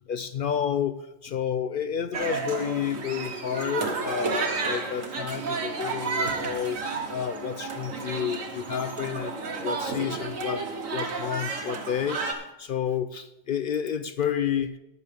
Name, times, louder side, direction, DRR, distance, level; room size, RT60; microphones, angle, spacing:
voice 1, 0.1-6.8 7.1-14.8, left 8 dB, 65° left, 11 dB, 0.5 m, -30 dB
sound 1, 2.1-12.3, right 4 dB, 90° right, 1.7 m, -32 dB
sound 2, 3.0-11.1, right 8 dB, 60° right, 0.8 m, -44 dB
13.5 x 10.0 x 3.4 m, 0.91 s
omnidirectional pair, 1.3 m